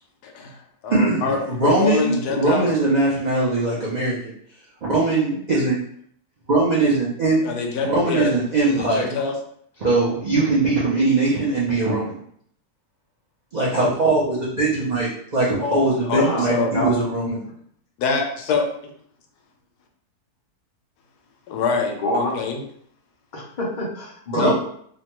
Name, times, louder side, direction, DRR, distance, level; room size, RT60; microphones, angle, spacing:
voice 1, 0.2-0.6 0.8-2.7 7.4-8.3 8.6-9.3 16.1-16.7 18.0-18.7 21.5-22.6 24.4-24.5, left 4 dB, 85° left, 3 dB, 1.1 m, -25 dB
voice 2, 0.9-4.3 4.8-5.8 6.5-7.4 7.8-9.1 9.8-12.2 13.5-17.4 24.3-24.5, right 2 dB, 75° right, -7 dB, 0.4 m, -21 dB
voice 3, 16.2-16.9 22.0-22.3 23.3-24.5, left 1 dB, 50° left, -3 dB, 0.5 m, -26 dB
2.9 x 2.2 x 2.9 m, 0.64 s
omnidirectional pair, 1.7 m